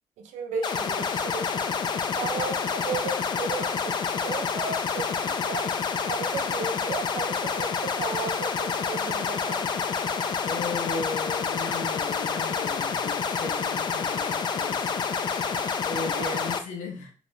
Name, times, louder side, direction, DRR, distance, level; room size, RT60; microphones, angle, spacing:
voice 1, 0.2-1.6 2.2-5.7 6.1-9.8 16.2-16.4, right 5 dB, 80° right, 0.6 m, -35 dB
sound 1, 0.6-16.6, left 6 dB, 35° left, 0.3 m, -28 dB
voice 2, 10.4-15.0 15.8-17.1, left 4 dB, 80° left, 0.7 m, -36 dB
2.5 x 2.1 x 3.1 m
cardioid pair, 100°, 12 cm